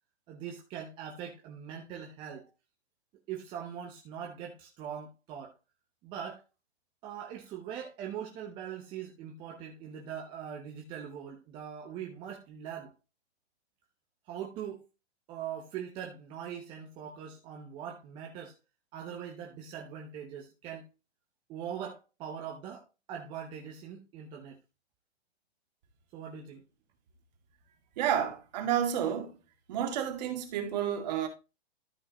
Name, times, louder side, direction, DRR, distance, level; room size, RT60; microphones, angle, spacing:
voice 1, 0.3-2.5 3.3-5.5 6.0-6.4 7.0-12.9 14.3-14.9 15.3-18.6 18.9-20.9 21.5-24.6 26.1-26.6, right 8 dB, 15° right, 0.7 m, -41 dB
voice 2, 28.0-29.3 29.7-31.3, right 9 dB, 40° right, 2.2 m, -30 dB
13.0 x 5.6 x 3.0 m
hypercardioid pair, 155°, 33 cm